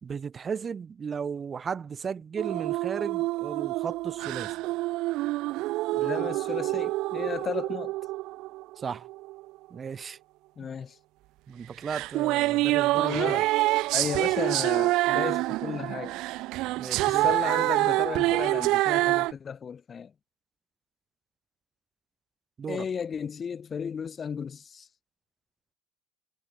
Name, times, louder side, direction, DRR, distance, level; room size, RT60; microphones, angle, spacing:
voice 1, 0.0-4.6 8.8-9.1 9.7-10.2 10.6-10.7 11.5-13.5 16.8-17.3 22.6-22.9, right 6 dB, 30° right, 2.3 m, -35 dB
sound 1, 2.4-9.4 11.9-19.3, right 19 dB, 65° right, 0.3 m, -27 dB
voice 2, 5.9-7.9 10.6-11.0 12.9-13.4 13.9-16.2 17.0-20.1 22.7-24.9, left 6 dB, 35° left, 1.3 m, -34 dB
supercardioid pair, 105°, 0 cm